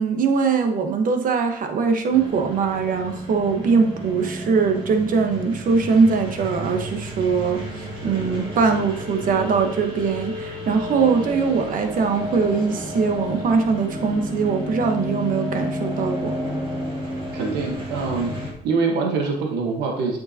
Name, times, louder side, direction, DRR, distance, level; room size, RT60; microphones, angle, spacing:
voice 1, 0.0-16.3, right 5 dB, 55° right, 5 dB, 1.2 m, -21 dB
sound 1, 2.1-18.5, equal, 30° right, 1.8 m, -31 dB
voice 2, 17.3-18.4 18.6-20.2, right 4 dB, 80° right, 1 dB, 1.3 m, -24 dB
8.3 x 6.6 x 2.8 m, 0.72 s
cardioid pair, 110°, 17 cm